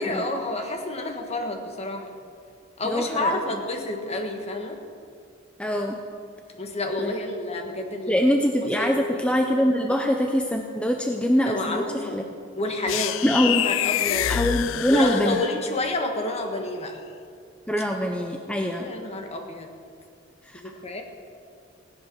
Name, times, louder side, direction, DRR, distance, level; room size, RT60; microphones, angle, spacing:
voice 1, 0.0-2.2 2.8-4.8 6.6-8.1 8.6-9.3 11.4-12.2 12.6-14.4 14.9-17.0 18.8-19.7 20.5-21.0, left 2 dB, 35° left, 3 dB, 1.6 m, -29 dB
voice 2, 2.8-3.4 5.6-6.0 7.0-7.1 8.1-12.2 13.0-13.7 14.3-15.4 17.7-18.9 20.5-20.6, equal, 5° left, 2 dB, 0.7 m, -24 dB
sound 1, 12.9-15.8, left 12 dB, 85° left, 0.3 m, -27 dB
17.0 x 10.5 x 6.2 m, 2.4 s
head